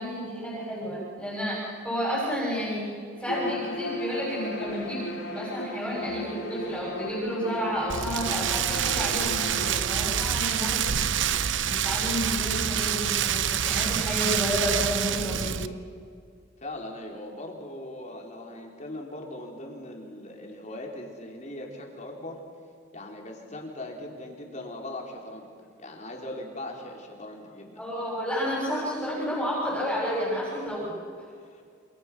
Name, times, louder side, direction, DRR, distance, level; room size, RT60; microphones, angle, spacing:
voice 1, 0.0-2.9 3.2-10.9 11.6-15.6 27.8-30.9, equal, 5° left, -6 dB, 7.0 m, -31 dB
Bowed string instrument, 3.2-10.0, left 1 dB, 80° left, 5.2 m, -36 dB
Rain, 7.9-15.7, right 9 dB, 70° right, 0.8 m, -27 dB
voice 2, 16.6-22.4 22.9-25.5 25.8-27.8 31.4-31.6, left 1 dB, 35° left, 0 dB, 4.2 m, -40 dB
28.5 x 27.0 x 6.3 m, 2.2 s
head